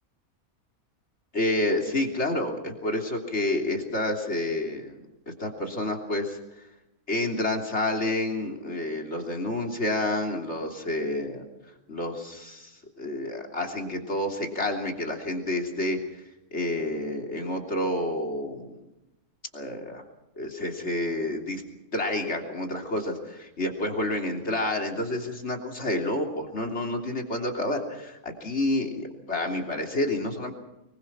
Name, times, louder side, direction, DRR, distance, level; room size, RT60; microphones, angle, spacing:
voice 1, 1.3-6.6 7.1-11.5 11.9-16.0 16.5-18.9 19.5-20.0 20.4-21.6 21.9-30.5, left 1 dB, 45° left, 2 dB, 3.5 m, -29 dB
25.0 x 22.0 x 5.9 m, 0.94 s
omnidirectional pair, 1.6 m